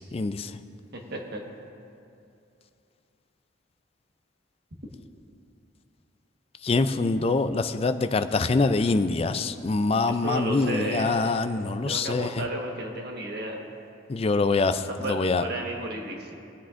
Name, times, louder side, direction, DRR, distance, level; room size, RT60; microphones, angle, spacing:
voice 1, 0.1-0.5 6.6-12.5 14.1-15.4, left 3 dB, 30° left, 10 dB, 0.3 m, -25 dB
voice 2, 10.1-11.1 11.8-13.6 15.0-16.3, right 1 dB, 55° right, 0 dB, 1.3 m, -33 dB
20.5 x 8.2 x 2.5 m, 2.6 s
head